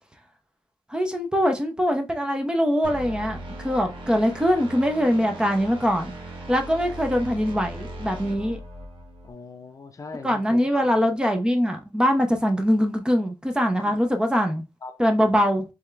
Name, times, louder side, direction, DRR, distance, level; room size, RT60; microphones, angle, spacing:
voice 1, 0.9-6.1 6.5-8.6 10.2-14.6 15.0-15.6, equal, 10° right, 0.7 m, -22 dB
sound 1, 2.8-9.3, right 1 dB, 90° right, 1.1 m, -38 dB
voice 2, 9.2-10.8 13.8-13.9 14.8-15.0 15.3-15.4, left 4 dB, 40° left, 0.6 m, -40 dB
3.6 x 3.4 x 3.2 m
wide cardioid pair, 130°, 9 cm